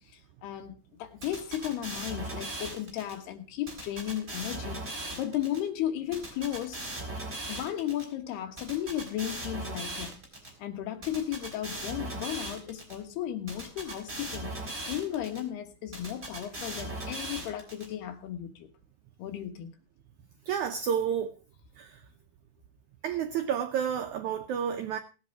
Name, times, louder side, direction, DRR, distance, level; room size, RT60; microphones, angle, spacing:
voice 1, 0.4-6.8 7.5-10.2 10.6-14.6 14.8-18.7 19.2-19.7, left 11 dB, 85° left, 3.4 m, -35 dB
sound 1, 1.2-3.1 3.7-5.6 6.1-8.0 8.6-10.5 11.0-12.9 13.5-15.4 15.9-17.8, right 2 dB, 15° right, 4.1 m, -38 dB
voice 2, 20.5-21.4 21.8-22.0 23.0-25.0, right 8 dB, 90° right, 1.7 m, -30 dB
18.0 x 8.0 x 4.7 m
omnidirectional pair, 4.5 m